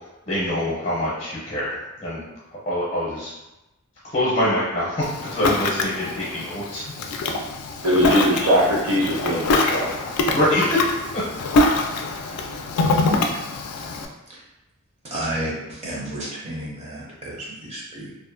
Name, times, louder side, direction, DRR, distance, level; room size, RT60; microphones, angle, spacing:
voice 1, 0.3-2.2 2.5-3.3 4.0-6.9 10.3-10.8 11.1-11.2, left 1 dB, 35° left, -7 dB, 0.5 m, -24 dB
Ocean, 5.0-14.0, left 2 dB, 85° left, 0.3 m, -24 dB
voice 2, 7.8-9.9, equal, 80° right, -4 dB, 0.8 m, -20 dB
voice 3, 15.1-18.1, right 1 dB, 30° right, -5 dB, 0.4 m, -31 dB
2.5 x 2.1 x 2.4 m, 0.97 s
head